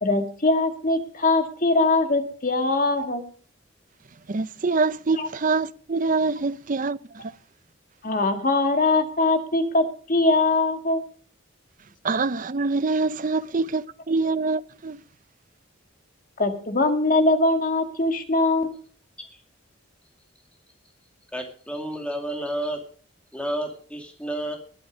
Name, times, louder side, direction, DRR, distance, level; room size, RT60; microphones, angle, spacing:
voice 1, 0.0-3.2 5.2-5.3 8.0-11.0 16.4-18.7, left 2 dB, 45° left, 1.8 m, -22 dB
voice 2, 4.3-7.0 7.2-7.3 12.0-15.0, right 3 dB, 40° right, 0.6 m, -25 dB
voice 3, 21.3-22.8 23.3-24.6, right 1 dB, 5° left, 2.4 m, -30 dB
20.5 x 8.7 x 5.1 m
head